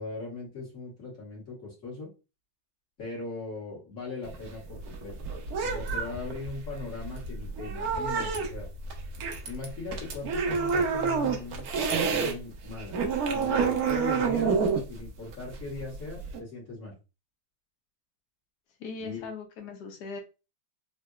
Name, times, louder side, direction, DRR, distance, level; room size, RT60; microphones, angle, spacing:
voice 1, 0.0-2.1 3.0-5.3 5.6-8.7 9.4-13.0 13.3-14.6 14.9-16.9 19.0-19.3, left 3 dB, 45° left, -5 dB, 1.4 m, -39 dB
sound 1, 4.2-12.3 12.7-16.4, right 5 dB, 80° right, 0.8 m, -28 dB
voice 2, 18.8-20.2, left 4 dB, 85° left, 4 dB, 0.9 m, -39 dB
3.8 x 2.1 x 2.2 m, 0.29 s
omnidirectional pair, 2.3 m